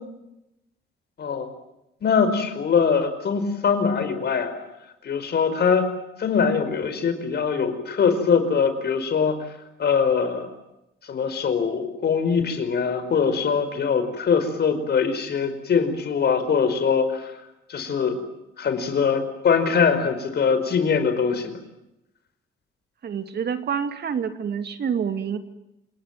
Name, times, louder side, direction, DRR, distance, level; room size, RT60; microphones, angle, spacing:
voice 1, 1.2-1.5 2.0-4.5 5.0-5.9 6.2-9.4 9.8-10.5 11.0-17.3 17.7-18.2 18.6-21.6, left 6 dB, 55° left, 9 dB, 5.1 m, -22 dB
voice 2, 23.0-25.4, right 7 dB, 55° right, 9 dB, 2.5 m, -27 dB
28.5 x 19.5 x 9.1 m, 0.87 s
cardioid pair, 90°, 20 cm